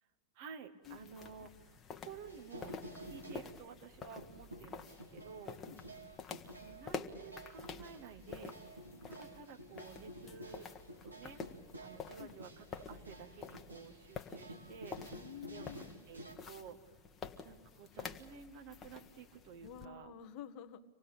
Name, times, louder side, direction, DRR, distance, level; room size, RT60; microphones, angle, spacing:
voice 1, 0.3-1.8 2.0-2.8 3.1-5.6 6.6-8.8 9.0-10.7 11.0-11.4 11.8-15.0 15.4-15.7 16.1-16.8 17.4-20.1, right 6 dB, 50° right, 6 dB, 1.9 m, -52 dB
sound 1, 0.8-19.9, left 5 dB, 25° left, 1.4 m, -49 dB
sound 2, 2.3-3.5 3.8-3.9 4.2-16.4, right 1 dB, 85° right, 2.8 m, -52 dB
voice 2, 15.1-16.0 19.6-20.8, left 9 dB, 40° left, 10 dB, 1.3 m, -50 dB
26.0 x 19.0 x 8.7 m, 1.3 s
figure-of-eight pair, 90°, 0 cm